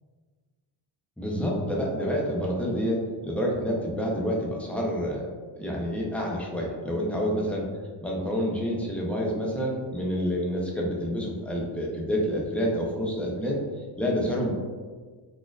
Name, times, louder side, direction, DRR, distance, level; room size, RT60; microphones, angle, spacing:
voice 1, 1.2-5.3 5.6-7.7 8.0-13.6 14.0-14.5, equal, 5° left, -3 dB, 0.5 m, -28 dB
4.1 x 2.4 x 2.3 m, 1.5 s
cardioid pair, 105°, 50 cm